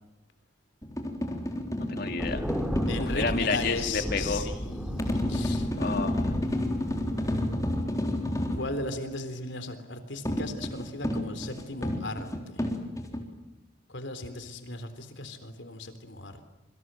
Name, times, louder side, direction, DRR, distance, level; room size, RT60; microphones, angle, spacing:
sound 1, 0.8-3.7 5.0-8.7 10.3-13.2, left 1 dB, 20° left, 3.7 m, -30 dB
voice 1, 1.8-2.5 3.0-4.4 5.5-6.3, left 4 dB, 55° left, 7 dB, 2.5 m, -31 dB
Thunder, 2.2-7.5, equal, 5° right, 2.7 m, -34 dB
voice 2, 2.9-5.7 8.6-12.7 13.9-16.4, left 2 dB, 70° left, 9 dB, 3.7 m, -37 dB
27.0 x 25.0 x 7.7 m, 1.0 s
head